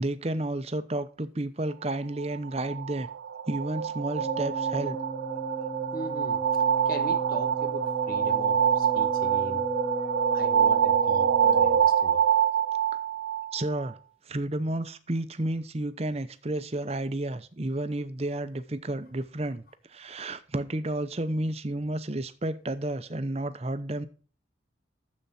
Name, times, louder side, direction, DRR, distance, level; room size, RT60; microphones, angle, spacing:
voice 1, 0.0-3.1 3.5-5.0 13.5-14.0 14.3-19.6 19.9-24.1, right 1 dB, 35° right, 0.7 m, -31 dB
sound 1, 2.2-13.9, right 8 dB, 75° right, 0.4 m, -26 dB
sound 2, 4.2-11.8, right 2 dB, 15° left, 1.4 m, -34 dB
voice 2, 5.9-6.4 6.9-9.6 10.3-12.2, left 2 dB, 50° left, 1.3 m, -40 dB
10.5 x 7.6 x 4.3 m
head